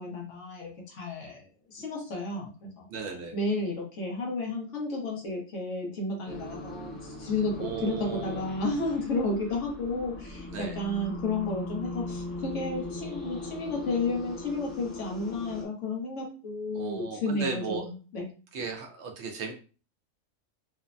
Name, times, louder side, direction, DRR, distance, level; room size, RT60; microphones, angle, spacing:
voice 1, 0.0-2.9 3.3-18.3, left 2 dB, 70° left, -1 dB, 1.2 m, -32 dB
voice 2, 2.9-3.3 7.6-8.5 10.5-10.8 16.7-17.9 18.5-19.5, right 5 dB, 65° right, 3 dB, 0.8 m, -36 dB
sound 1, 6.3-15.6, left 2 dB, ahead, 0.3 m, -39 dB
3.1 x 2.1 x 2.5 m, 0.36 s
omnidirectional pair, 1.3 m